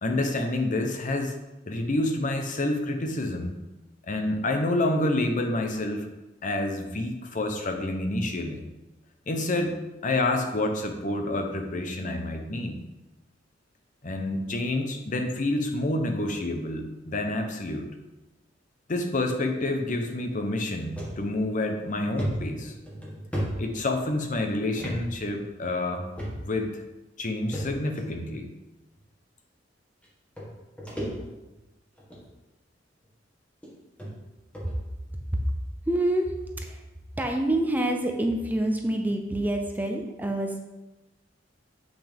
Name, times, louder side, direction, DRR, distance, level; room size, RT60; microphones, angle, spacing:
voice 1, 0.0-1.4 1.7-3.6 4.1-6.1 6.4-8.6 9.3-9.7 10.0-12.8 14.0-17.9 18.9-22.7 23.6-26.1 26.4-26.8 27.2-28.5, left 2 dB, 45° left, 5 dB, 0.9 m, -28 dB
sound 1, 21.0-21.2 21.6-21.7 22.2-24.2 24.8-25.0 25.3-25.4 26.2-26.6 27.5-28.1 29.0-29.1 30.0-30.1 30.4-31.6 32.0-32.3 33.0-33.1 33.6-33.7 34.0-34.1 34.5-34.7, equal, 5° left, 1.8 m, -34 dB
voice 2, 35.9-36.8 37.2-40.7, right 1 dB, 10° right, 3 dB, 0.6 m, -27 dB
7.8 x 6.0 x 3.5 m, 1.0 s
head